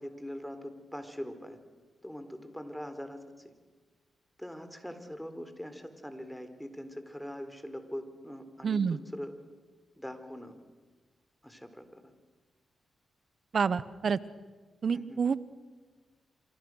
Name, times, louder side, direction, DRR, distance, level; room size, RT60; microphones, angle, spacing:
voice 1, 0.0-1.6 2.0-3.5 4.4-9.3 10.0-10.6 11.4-12.1 14.9-15.2, equal, 5° left, 9 dB, 4.1 m, -42 dB
voice 2, 8.6-9.0 13.5-14.2 14.8-15.5, right 6 dB, 60° right, 17 dB, 1.1 m, -28 dB
27.5 x 25.5 x 6.5 m, 1.4 s
supercardioid pair, 45°, 0 cm